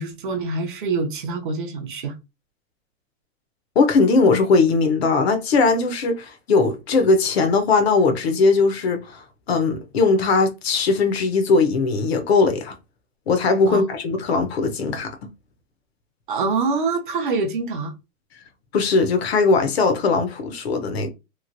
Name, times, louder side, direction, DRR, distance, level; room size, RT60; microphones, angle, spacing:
voice 1, 0.0-2.2 13.7-13.8 16.3-17.9, right 4 dB, 40° right, 0.6 m, -25 dB
voice 2, 3.8-12.7 13.3-15.1 18.7-21.1, left 4 dB, 50° left, 0.6 m, -19 dB
3.1 x 2.5 x 2.5 m
hypercardioid pair, 160°, 42 cm